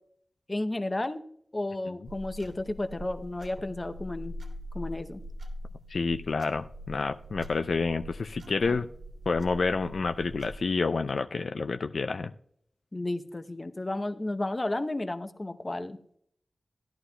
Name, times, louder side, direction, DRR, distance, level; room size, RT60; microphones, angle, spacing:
voice 1, 0.5-1.2 1.5-4.3 4.7-5.2 8.6-8.8 12.9-16.0, left 2 dB, 30° left, 10 dB, 0.7 m, -32 dB
sound 1, 2.1-10.6, equal, 85° right, 2.0 m, -43 dB
voice 2, 5.9-8.9 9.3-12.3, left 4 dB, 75° left, 8 dB, 0.4 m, -29 dB
16.5 x 11.5 x 2.2 m, 0.66 s
wide cardioid pair, 80°, 0 cm